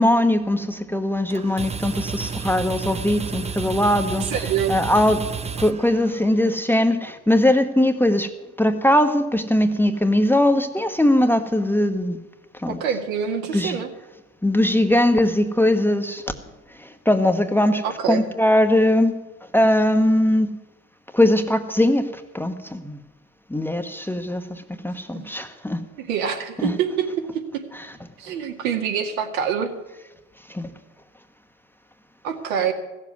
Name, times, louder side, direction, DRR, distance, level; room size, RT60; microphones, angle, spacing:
voice 1, 0.0-4.2 4.7-5.3 5.6-8.3 8.6-12.2 12.5-12.8 13.5-13.8 14.4-16.2 16.8-19.1 19.5-20.6 21.1-23.0 23.5-25.8 26.6-26.7 30.5-30.7, left 1 dB, 5° left, 6 dB, 1.1 m, -20 dB
sound 1, 1.3-6.5, right 6 dB, 15° right, 0.6 m, -31 dB
voice 2, 4.2-4.7 12.7-13.9 17.8-18.3 25.1-25.3 26.0-27.6 28.2-29.7 32.2-32.7, right 7 dB, 75° right, 3 dB, 2.1 m, -25 dB
15.5 x 7.5 x 9.4 m, 1.0 s
hypercardioid pair, 80°, 42 cm